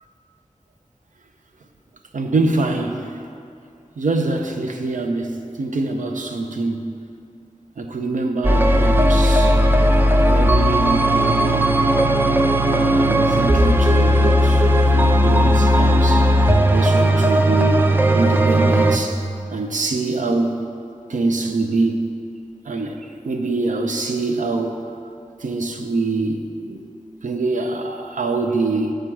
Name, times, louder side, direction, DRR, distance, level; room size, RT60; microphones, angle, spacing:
voice 1, 2.1-3.1 4.0-6.9 7.8-9.6 10.2-11.8 12.7-16.4 16.7-17.8 18.1-19.2 19.5-20.6 21.1-22.1 22.7-24.9 25.4-26.8 27.2-28.9, right 3 dB, 75° right, 4 dB, 0.5 m, -24 dB
sound 1, 8.4-19.0, equal, 15° right, 0.4 m, -16 dB
6.6 x 4.6 x 6.1 m, 2.6 s
wide cardioid pair, 70°, 13 cm